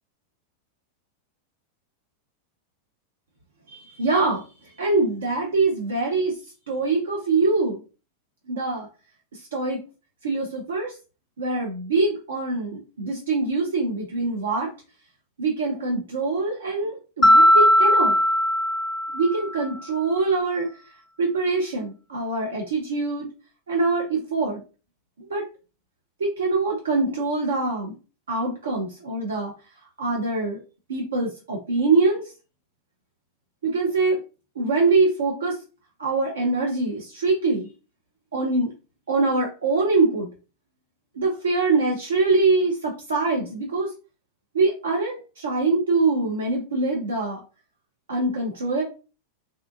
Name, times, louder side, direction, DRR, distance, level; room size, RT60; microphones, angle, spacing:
voice 1, 3.7-4.4 4.8-6.4 6.7-7.8 8.5-8.9 9.3-9.8 10.2-11.0 11.4-14.7 15.4-18.2 19.1-20.7 21.2-23.3 23.7-24.6 25.2-25.5 26.2-28.0 28.3-29.5 30.0-30.6 30.9-32.2 33.6-34.2 34.6-35.6 36.0-37.7 38.3-38.7 39.1-40.3 41.2-43.9 44.5-47.4 48.1-48.8, right 3 dB, 65° right, -1 dB, 0.5 m, -24 dB
Mallet percussion, 17.2-19.6, equal, 20° left, 0.4 m, -18 dB
2.7 x 2.2 x 2.5 m, 0.33 s
figure-of-eight pair, 90°, 0 cm